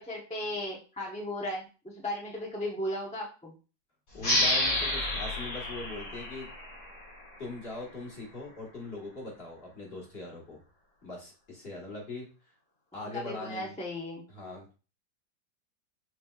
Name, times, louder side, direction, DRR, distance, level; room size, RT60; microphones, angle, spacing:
voice 1, 0.0-3.5 13.0-14.2, left 1 dB, 10° left, -2 dB, 0.5 m, -36 dB
voice 2, 4.1-6.5 7.4-10.6 11.0-12.3 12.9-13.7 14.3-14.7, left 2 dB, 35° left, -2 dB, 1.6 m, -41 dB
sound 1, 4.2-7.5, left 1 dB, 60° left, 2.5 m, -30 dB
6.2 x 3.2 x 2.4 m, 0.34 s
omnidirectional pair, 1.9 m